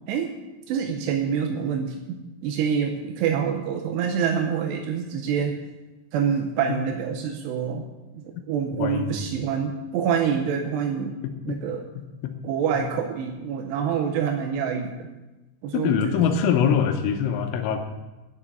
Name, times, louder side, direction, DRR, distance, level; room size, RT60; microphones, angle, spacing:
voice 1, 0.7-5.5 6.1-7.8 8.2-11.2 11.4-11.8 12.4-14.9 15.6-16.2, right 7 dB, 80° right, 3 dB, 2.5 m, -26 dB
voice 2, 8.8-9.2 11.2-11.6 12.0-12.3 12.7-12.8 15.7-17.8, left 7 dB, 80° left, 6 dB, 3.3 m, -24 dB
10.0 x 7.2 x 8.9 m, 1.1 s
omnidirectional pair, 5.9 m